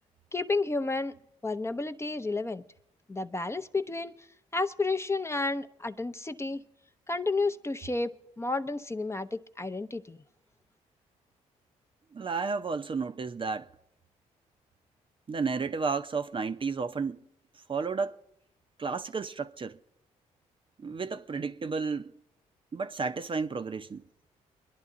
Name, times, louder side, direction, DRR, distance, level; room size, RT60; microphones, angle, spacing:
voice 1, 0.3-1.2 1.4-2.6 3.1-4.3 4.5-6.6 7.1-10.2, left 3 dB, 20° left, 0.6 m, -31 dB
voice 2, 12.1-13.7 15.3-17.2 17.7-18.2 18.8-19.8 20.8-22.1 22.7-24.0, right 4 dB, 35° right, 0.6 m, -32 dB
25.0 x 10.5 x 3.7 m
supercardioid pair, 55°, 15 cm